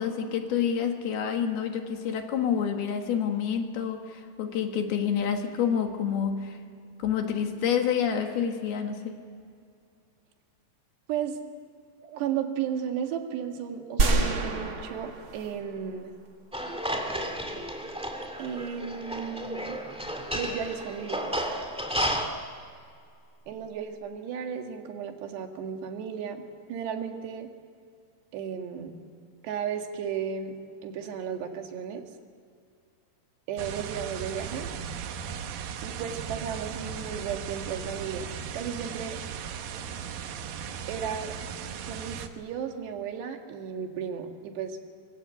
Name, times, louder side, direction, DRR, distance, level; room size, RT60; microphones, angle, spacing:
voice 1, 0.0-6.6 7.0-9.2, left 8 dB, 70° left, 4 dB, 3.6 m, -28 dB
voice 2, 11.1-11.4 12.0-16.1 18.4-19.8 20.3-21.6 23.5-27.5 28.3-28.9 29.4-30.6 30.8-32.1 33.5-34.7 35.8-38.3 38.5-39.2 40.9-41.3 41.8-44.8, right 7 dB, 80° right, 4 dB, 4.0 m, -34 dB
sound 1, 14.0-16.3, right 3 dB, 40° right, 2.0 m, -27 dB
sound 2, 16.5-22.3, equal, 5° right, 0.5 m, -32 dB
sound 3, 33.6-42.3, right 7 dB, 65° right, 2.6 m, -37 dB
24.0 x 23.5 x 8.1 m, 2.3 s
omnidirectional pair, 4.8 m